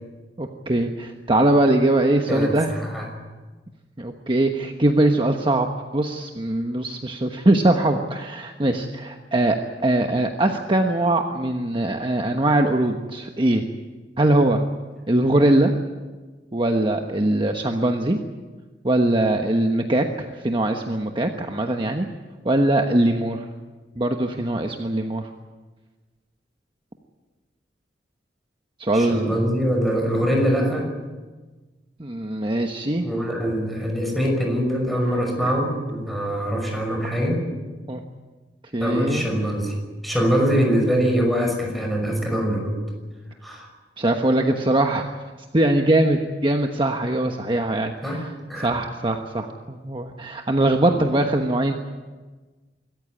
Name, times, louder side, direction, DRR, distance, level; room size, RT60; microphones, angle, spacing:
voice 1, 0.4-2.7 4.0-5.7 5.9-13.6 14.2-14.6 15.1-15.7 16.5-18.2 18.8-22.1 22.4-23.4 24.0-25.3 28.8-29.4 32.0-33.0 37.9-38.0 38.7-39.3 44.0-45.1 45.5-48.3 48.6-51.7, right 1 dB, 30° right, 4 dB, 1.2 m, -21 dB
voice 2, 2.3-3.2 28.9-30.9 33.0-37.4 38.8-39.7 40.0-42.8 43.4-43.7 48.0-48.2 48.5-48.7, equal, ahead, 1 dB, 5.9 m, -23 dB
25.5 x 14.5 x 9.7 m, 1.3 s
head